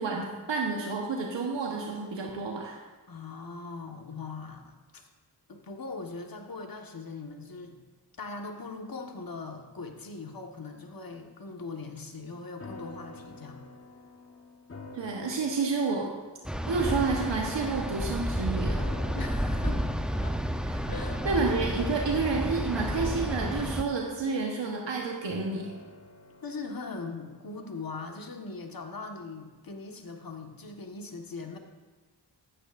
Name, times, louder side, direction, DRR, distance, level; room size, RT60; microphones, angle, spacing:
voice 1, 0.0-2.8 14.9-16.1 16.7-18.8 21.2-25.7, right 4 dB, 75° right, -1 dB, 1.2 m, -30 dB
voice 2, 3.1-5.1 5.5-7.8 8.2-13.6 19.1-19.9 20.2-20.4 20.9-21.2 26.4-31.6, left 3 dB, 50° left, 3 dB, 1.5 m, -40 dB
sound 1, 12.6-27.9 28.3-28.4, left 2 dB, 30° left, 1.3 m, -47 dB
sound 2, 16.4-23.8, equal, ahead, 0.7 m, -31 dB
14.0 x 9.7 x 2.6 m, 1.3 s
cardioid pair, 40°, 44 cm